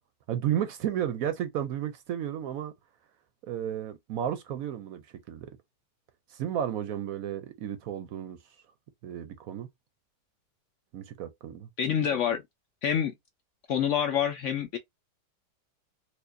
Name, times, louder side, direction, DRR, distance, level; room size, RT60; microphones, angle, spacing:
voice 1, 0.3-2.7 3.4-5.5 6.3-8.4 9.0-9.7 10.9-11.7, right 10 dB, 70° right, 0.9 m, -33 dB
voice 2, 11.8-12.4 12.8-13.1 13.7-14.8, left 8 dB, 65° left, 0.7 m, -27 dB
4.3 x 2.4 x 2.6 m
omnidirectional pair, 1.7 m